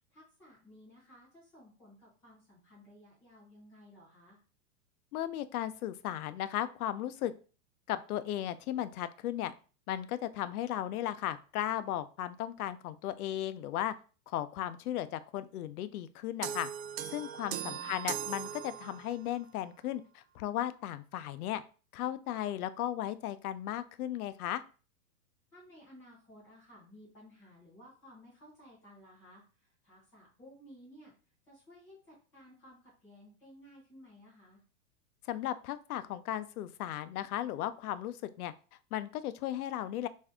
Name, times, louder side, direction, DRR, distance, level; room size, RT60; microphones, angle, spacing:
voice 1, 0.1-4.4 17.5-17.9 25.5-31.1 31.5-34.6, equal, 5° left, -7 dB, 0.4 m, -56 dB
voice 2, 5.1-7.3 7.9-9.5 9.9-13.9 14.3-16.7 17.1-21.6 21.9-24.6 35.2-38.5 38.9-40.1, left 12 dB, 80° left, 13 dB, 0.5 m, -36 dB
sound 1, 16.4-19.3, right 10 dB, 65° right, 0.5 m, -39 dB
3.3 x 2.6 x 3.6 m, 0.37 s
supercardioid pair, 175°, 43 cm